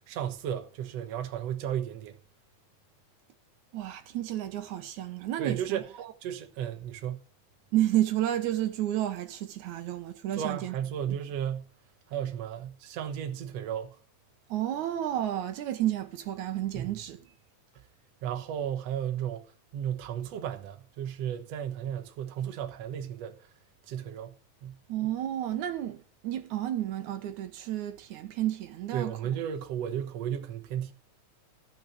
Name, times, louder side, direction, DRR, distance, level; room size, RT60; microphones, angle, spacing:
voice 1, 0.1-2.2 5.4-5.8 6.2-7.3 10.4-11.7 12.1-14.0 16.7-16.9 18.2-19.4 19.7-23.4 23.9-24.3 24.6-24.8 28.9-30.9, right 9 dB, 65° right, 2.2 m, -34 dB
voice 2, 3.7-6.1 7.7-10.8 14.5-17.2 24.9-29.2, right 13 dB, 80° right, 2.4 m, -31 dB
13.5 x 6.2 x 7.7 m
omnidirectional pair, 3.3 m